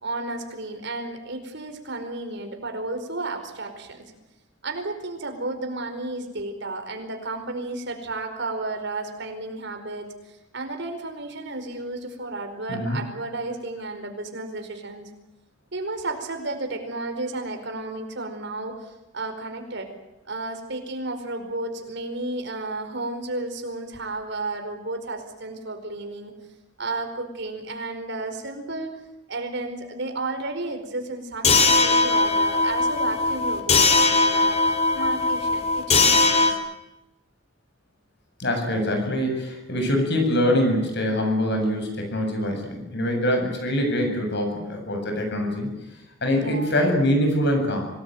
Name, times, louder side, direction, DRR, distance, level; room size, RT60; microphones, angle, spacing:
voice 1, 0.0-4.0 4.6-15.1 15.7-19.9 20.3-26.3 26.8-28.9 29.3-36.6 46.3-46.7, right 2 dB, 65° right, 6 dB, 4.8 m, -33 dB
sound 1, 31.4-36.5, left 3 dB, 35° left, 3.6 m, -20 dB
voice 2, 38.4-45.7 46.2-47.8, equal, 60° left, 4 dB, 7.7 m, -24 dB
26.0 x 19.0 x 9.4 m, 0.95 s
head